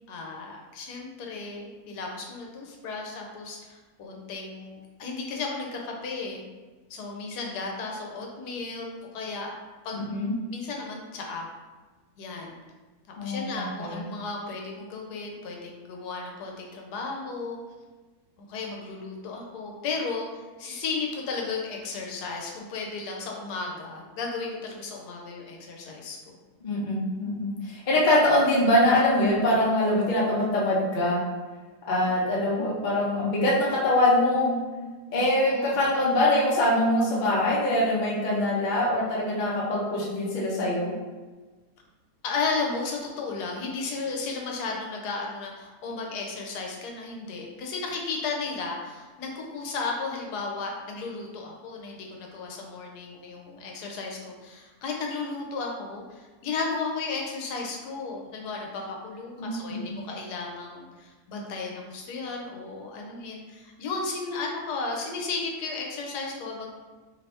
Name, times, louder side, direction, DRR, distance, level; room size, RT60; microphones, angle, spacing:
voice 1, 0.1-6.4 6.9-8.9 9.1-9.5 9.8-11.5 12.2-12.5 13.2-17.6 18.5-26.4 32.3-32.4 35.1-35.8 42.2-66.7, left 4 dB, 80° left, 0 dB, 1.2 m, -34 dB
voice 2, 9.9-10.3 13.2-14.0 26.6-31.2 31.9-34.6 35.1-40.9 59.4-60.0, left 1 dB, 45° left, -5 dB, 0.6 m, -24 dB
3.0 x 2.7 x 3.3 m, 1.3 s
omnidirectional pair, 1.7 m